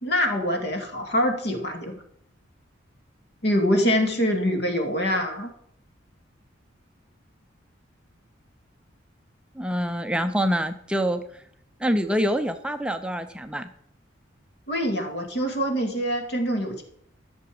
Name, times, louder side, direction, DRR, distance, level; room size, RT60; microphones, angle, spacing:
voice 1, 0.0-1.9 3.4-5.5 14.7-16.8, equal, 55° left, 3 dB, 2.0 m, -24 dB
voice 2, 9.6-11.2 11.8-13.7, equal, 5° right, 7 dB, 0.5 m, -26 dB
14.0 x 6.9 x 5.0 m, 0.69 s
head